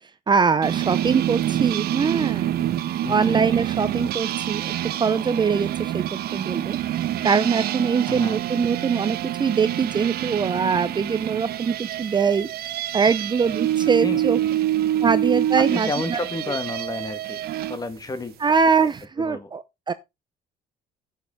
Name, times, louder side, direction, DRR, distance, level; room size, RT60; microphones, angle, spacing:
voice 1, 0.3-2.6 3.1-4.7 5.0-6.8 7.2-14.4 15.0-16.2 18.4-19.9, right 5 dB, 25° right, 0.6 m, -23 dB
sound 1, 0.6-17.8, right 12 dB, 70° right, 1.0 m, -26 dB
voice 2, 3.0-3.4 8.1-8.4 14.0-14.2 15.6-17.4 17.7-18.3 19.2-19.5, left 3 dB, 20° left, 1.7 m, -31 dB
9.6 x 6.6 x 4.6 m
cardioid pair, 110°, 17 cm